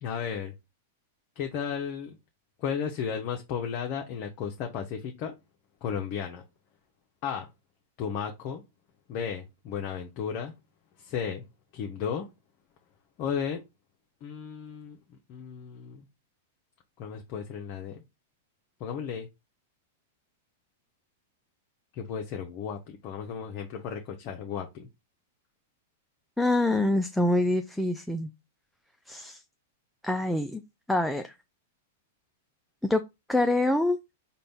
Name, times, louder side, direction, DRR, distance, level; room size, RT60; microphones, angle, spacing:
voice 1, 0.0-0.5 1.4-2.2 2.6-5.4 5.8-6.4 7.2-7.5 8.0-8.6 9.1-10.5 11.0-11.4 11.7-12.2 13.2-13.6 14.2-15.0 15.3-16.0 17.0-18.0 18.8-19.3 21.9-24.9, left 7 dB, 45° left, 0.6 m, -34 dB
voice 2, 26.4-28.3 29.1-29.4 30.0-30.6 30.9-31.3 32.9-33.0 33.3-34.0, left 2 dB, ahead, 0.3 m, -25 dB
3.9 x 2.2 x 3.3 m
hypercardioid pair, 105°, 0 cm